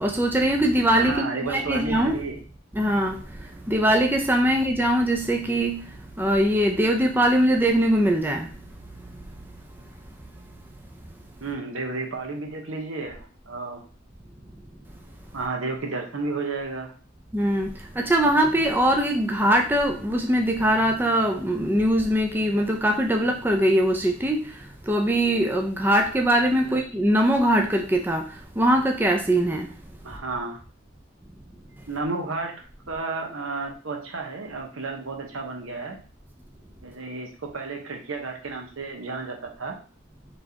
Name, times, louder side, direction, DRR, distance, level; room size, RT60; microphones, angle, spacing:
voice 1, 0.0-2.2 2.8-3.2 3.7-5.8 6.2-8.5 17.3-17.7 18.0-24.5 24.9-28.3 28.6-29.7, right 1 dB, 10° right, 2 dB, 0.4 m, -21 dB
voice 2, 0.9-2.4 11.4-13.8 15.3-16.9 26.6-26.9 30.0-30.6 31.9-32.6 32.9-36.0 36.8-39.8, right 3 dB, 80° right, 2 dB, 1.0 m, -32 dB
4.5 x 3.3 x 2.8 m, 0.38 s
head